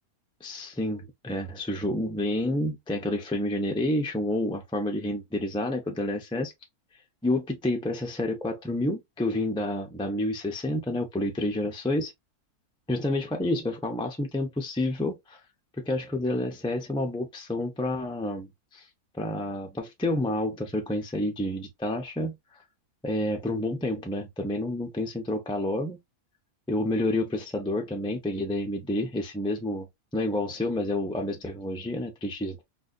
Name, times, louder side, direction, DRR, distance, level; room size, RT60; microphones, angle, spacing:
voice 1, 0.4-6.5 7.2-12.1 12.9-15.4 15.8-18.9 19.2-22.4 23.0-26.0 26.7-29.9 30.1-32.6, left 1 dB, 10° left, 0.3 m, -29 dB
4.1 x 2.5 x 2.4 m
omnidirectional pair, 1.6 m